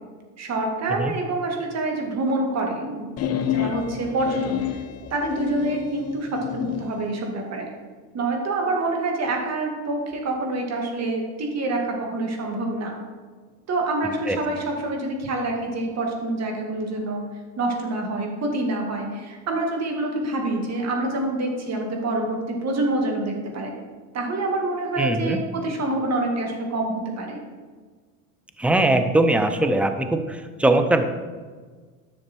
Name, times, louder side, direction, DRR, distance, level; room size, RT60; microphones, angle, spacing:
voice 1, 0.4-4.8 5.1-7.7 8.1-12.9 13.7-17.2 17.6-23.7 24.1-27.4, right 2 dB, 35° right, 1 dB, 2.3 m, -26 dB
sound 1, 3.2-6.9, left 10 dB, 35° left, 0.9 m, -29 dB
voice 2, 25.0-25.4 28.6-31.1, right 2 dB, 5° right, 7 dB, 0.7 m, -21 dB
11.0 x 6.5 x 4.5 m, 1.5 s
supercardioid pair, 105°, 43 cm